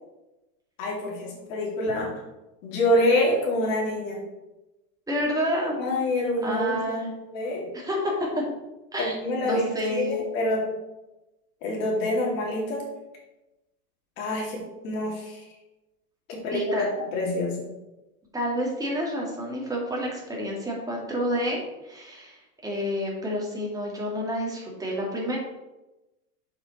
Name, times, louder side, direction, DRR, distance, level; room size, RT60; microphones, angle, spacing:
voice 1, 0.8-2.1 2.6-4.2 5.8-7.0 7.3-7.7 9.0-10.7 11.6-12.8 14.2-15.4 16.3-17.7, left 1 dB, 65° left, -2 dB, 2.6 m, -26 dB
voice 2, 5.1-5.8 6.4-7.1 7.7-8.4 8.9-9.2 9.4-10.2 16.5-16.9 18.3-25.4, equal, 10° right, -3 dB, 2.3 m, -29 dB
6.9 x 5.7 x 4.2 m, 1.0 s
supercardioid pair, 125°, 44 cm